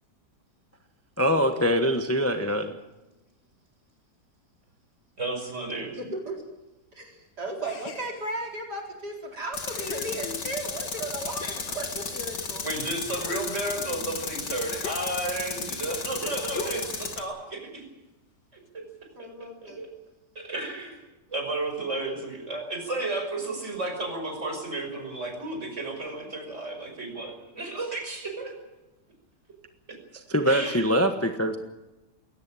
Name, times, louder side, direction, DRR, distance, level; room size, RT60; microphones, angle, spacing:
voice 1, 1.2-2.7 30.3-31.6, equal, 10° left, 6 dB, 1.1 m, -23 dB
voice 2, 5.2-6.0 12.6-17.9 18.7-18.9 19.2-19.9 20.3-21.0 21.3-28.5 29.9-30.0 30.4-30.9, right 2 dB, 40° right, 4 dB, 6.0 m, -33 dB
voice 3, 6.0-6.4 6.9-12.7 19.2-19.8, right 2 dB, 65° right, 0 dB, 4.7 m, -35 dB
sound 1, 7.6-8.5 9.1-9.2 9.7-10.7 11.2-12.7 13.0-15.5 16.5-17.1, left 5 dB, 85° left, 2.3 m, -41 dB
Tools, 9.5-17.2, left 4 dB, 70° left, 2.8 m, -34 dB
21.0 x 18.0 x 9.0 m, 0.99 s
omnidirectional pair, 1.9 m